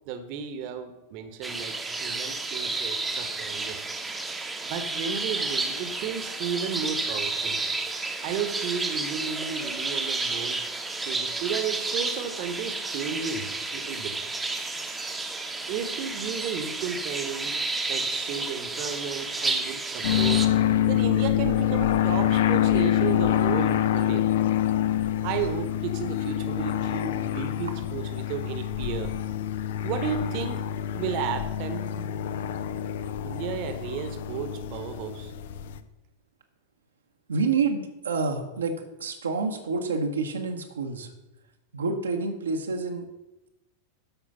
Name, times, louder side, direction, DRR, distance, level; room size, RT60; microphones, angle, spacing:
voice 1, 0.1-3.9 4.6-7.6 8.2-10.6 11.0-14.1 15.7-17.6 17.9-20.4 20.9-24.2 25.2-29.1 29.8-30.6 30.9-31.9 33.2-35.3, right 7 dB, 45° right, 9 dB, 1.0 m, -33 dB
sound 1, 1.4-20.5, right 3 dB, 10° right, 0.9 m, -31 dB
sound 2, 20.0-35.8, left 11 dB, 55° left, 0.6 m, -26 dB
voice 2, 37.3-41.1 41.7-43.1, right 4 dB, 70° right, 3 dB, 0.9 m, -28 dB
12.5 x 5.0 x 5.4 m, 0.98 s
figure-of-eight pair, 90°, 0 cm